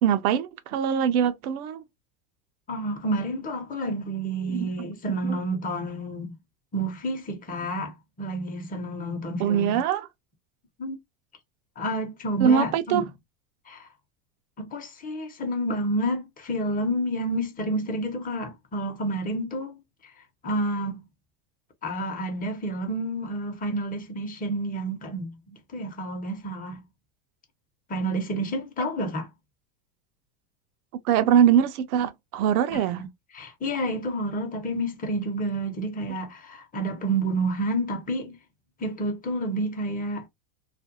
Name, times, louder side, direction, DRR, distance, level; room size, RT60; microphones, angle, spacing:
voice 1, 0.0-1.8 4.5-4.9 5.2-5.4 9.4-10.1 12.4-13.0 31.0-33.0, right 9 dB, 70° right, 0.7 m, -22 dB
voice 2, 2.7-6.4 6.7-9.8 10.8-11.0 11.8-13.1 13.7-13.9 14.6-20.1 20.4-21.1 21.8-26.8 27.9-29.3 32.7-33.1 33.3-38.4 38.8-40.2, right 1 dB, 20° left, 0.8 m, -29 dB
2.5 x 2.2 x 2.6 m
hypercardioid pair, 105°, 46 cm